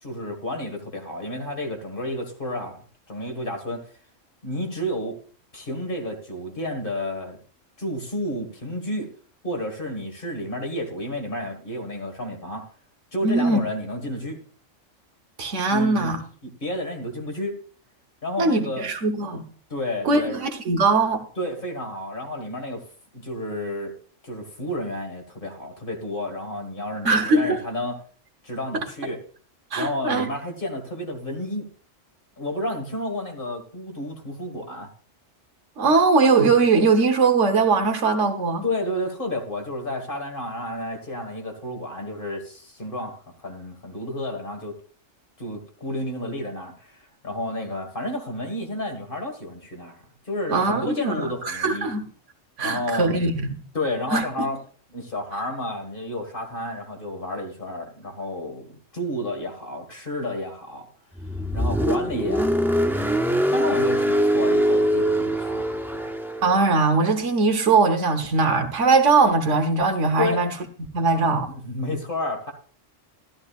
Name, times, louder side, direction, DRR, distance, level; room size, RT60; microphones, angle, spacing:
voice 1, 0.0-2.8 3.1-3.8 4.4-5.2 5.5-7.4 7.8-9.1 9.4-12.7 13.1-14.4 15.7-16.1 16.4-17.6 18.2-18.9 19.7-20.4 21.4-22.9 23.1-23.9 24.2-28.0 28.4-29.2 29.8-31.7 32.4-34.9 38.6-44.8 45.4-51.9 52.6-53.2 53.7-54.6 54.9-58.7 58.9-60.9 61.5-62.8 63.5-66.0 70.2-70.4 71.4-72.5, left 1 dB, 45° left, 1.9 m, -31 dB
voice 2, 13.2-13.6 15.4-16.2 18.4-19.4 20.0-21.2 27.0-27.6 28.7-28.9 29.7-30.3 35.8-38.6 50.5-52.0 52.6-53.5 54.1-54.3 66.4-70.5 70.9-71.5, right 3 dB, 70° right, 1.5 m, -20 dB
Car, 61.2-66.6, equal, 5° right, 0.3 m, -23 dB
12.5 x 12.0 x 2.4 m
omnidirectional pair, 1.3 m